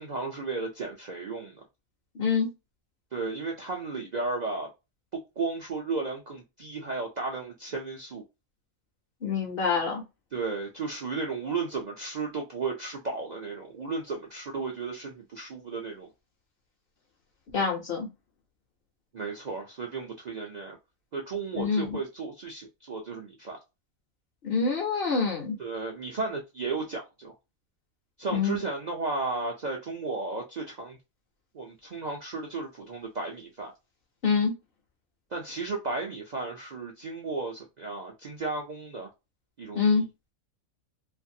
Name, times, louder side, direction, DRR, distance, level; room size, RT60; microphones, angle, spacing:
voice 1, 0.0-1.6 3.1-4.7 5.4-8.2 10.3-16.1 19.1-20.8 21.1-23.6 25.6-27.3 28.2-31.0 31.5-33.7 35.3-39.1 39.6-40.0, right 3 dB, 55° right, 0.5 m, -34 dB
voice 2, 2.2-2.5 9.2-10.0 17.5-18.1 21.5-21.9 24.4-25.6 28.3-28.6 34.2-34.5 39.8-40.1, left 5 dB, 55° left, 0.7 m, -26 dB
2.5 x 2.4 x 2.6 m
omnidirectional pair, 1.4 m